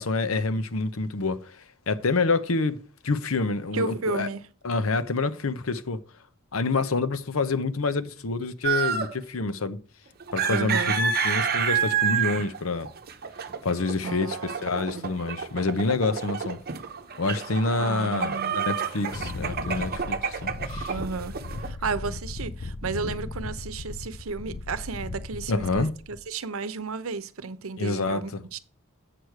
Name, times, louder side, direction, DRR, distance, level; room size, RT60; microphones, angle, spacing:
voice 1, 0.0-1.6 1.9-2.8 3.0-4.3 4.6-6.0 6.5-9.8 10.3-12.9 13.6-16.6 17.2-20.9 25.5-25.9 27.8-28.4, left 3 dB, 80° left, 0.8 m, -27 dB
voice 2, 3.7-4.5 10.4-10.9 14.0-15.0 17.8-18.6 20.9-21.3 21.6-28.6, right 4 dB, 85° right, 0.8 m, -33 dB
sound 1, 8.6-9.2 10.2-21.7, right 6 dB, 50° right, 0.8 m, -29 dB
Wind, 19.1-26.2, left 2 dB, 45° left, 0.5 m, -37 dB
7.9 x 6.5 x 4.6 m
head